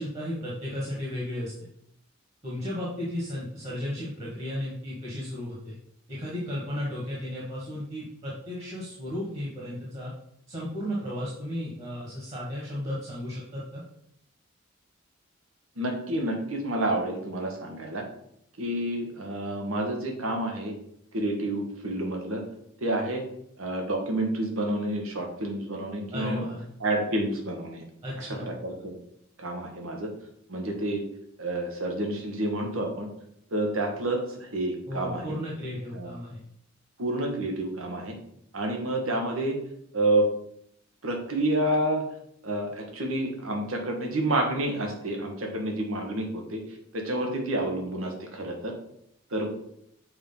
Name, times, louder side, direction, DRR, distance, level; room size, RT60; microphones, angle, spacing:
voice 1, 0.0-1.5 2.4-5.7 6.1-10.1 10.5-13.8 26.1-26.6 28.0-28.5 34.9-36.4, equal, 30° right, -5 dB, 1.5 m, -34 dB
voice 2, 15.8-18.0 18.6-20.7 21.1-22.4 22.8-23.2 23.6-26.5 26.8-27.8 28.2-29.0 29.4-30.1 30.5-31.0 31.4-33.1 33.5-35.2 35.9-36.1 37.0-38.2 38.5-39.6 39.9-40.3 41.0-42.0 42.4-46.6 46.9-48.7 49.3-49.5, right 1 dB, 90° right, 2 dB, 1.5 m, -29 dB
6.4 x 4.5 x 3.9 m, 0.71 s
head